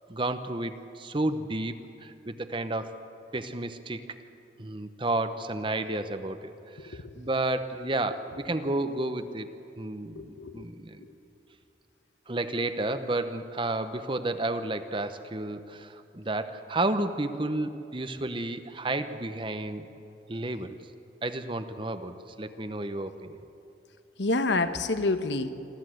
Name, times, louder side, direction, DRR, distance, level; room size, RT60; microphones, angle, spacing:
voice 1, 0.1-2.9 3.3-4.0 4.6-6.5 6.8-9.5 9.8-11.0 12.3-19.9 20.3-20.8 21.2-23.4, right 2 dB, 25° right, 10 dB, 0.8 m, -31 dB
voice 2, 6.8-7.2 10.2-10.6 11.0-11.1 24.2-25.5, left 2 dB, 75° left, 10 dB, 1.1 m, -28 dB
26.5 x 13.5 x 7.8 m, 2.9 s
head